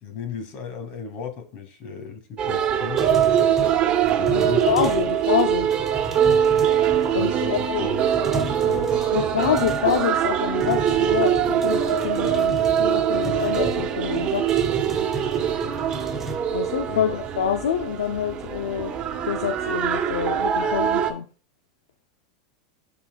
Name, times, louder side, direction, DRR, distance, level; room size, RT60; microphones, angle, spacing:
voice 1, 0.0-3.3 4.2-4.7 7.0-8.9 16.9-17.2, left 6 dB, 50° left, 2.0 m, -35 dB
sound 1, 2.4-21.1, right 9 dB, 35° right, 1.2 m, -23 dB
sound 2, 3.0-5.1 5.4-7.4 7.8-7.9 8.1-10.3 10.6-16.4, right 1 dB, 5° right, 2.2 m, -35 dB
voice 2, 4.3-5.7 7.1-7.9 9.1-14.5 16.5-18.9 19.2-21.3, left 9 dB, 80° left, 0.6 m, -26 dB
12.0 x 4.4 x 2.3 m
hypercardioid pair, 100°, 3 cm